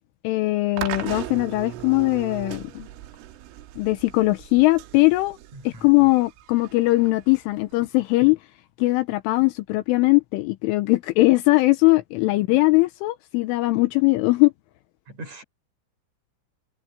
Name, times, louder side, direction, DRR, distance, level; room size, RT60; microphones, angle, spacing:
voice 1, 0.2-2.9 3.8-5.4 5.6-8.4 8.8-14.5, left 21 dB, 80° left, 3.3 m, -20 dB
sound 1, 0.8-7.8, right 13 dB, 80° right, 3.6 m, -38 dB
voice 2, 5.5-5.9 15.2-15.4, right 2 dB, 35° right, 6.7 m, -40 dB
omnidirectional pair, 5.8 m